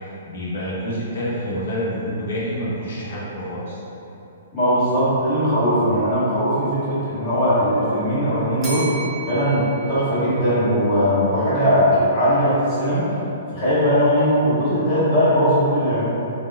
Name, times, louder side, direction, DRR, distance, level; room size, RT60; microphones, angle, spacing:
voice 1, 0.3-3.8, equal, 55° left, -7 dB, 0.8 m, -27 dB
voice 2, 4.5-8.9 9.3-13.1 13.5-16.0, equal, 35° left, -12 dB, 1.2 m, -19 dB
Bell, 8.6-10.8, right 4 dB, 15° right, 0.5 m, -35 dB
3.5 x 2.2 x 2.3 m, 2.9 s
figure-of-eight pair, 115°, 0 cm